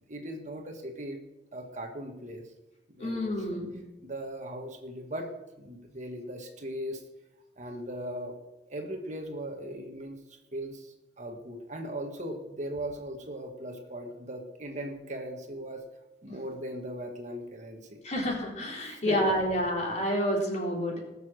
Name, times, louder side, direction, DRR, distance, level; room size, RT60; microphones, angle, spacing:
voice 1, 0.1-1.2 1.5-2.4 2.9-3.2 3.5-3.6 4.0-5.3 5.6-7.0 7.6-8.3 8.7-10.2 10.5-15.8 16.2-18.0 18.8-19.2, right 1 dB, 40° right, 3 dB, 1.5 m, -38 dB
voice 2, 3.0-3.7 18.0-21.0, equal, 40° left, -2 dB, 4.1 m, -29 dB
19.5 x 6.9 x 6.4 m, 1.0 s
head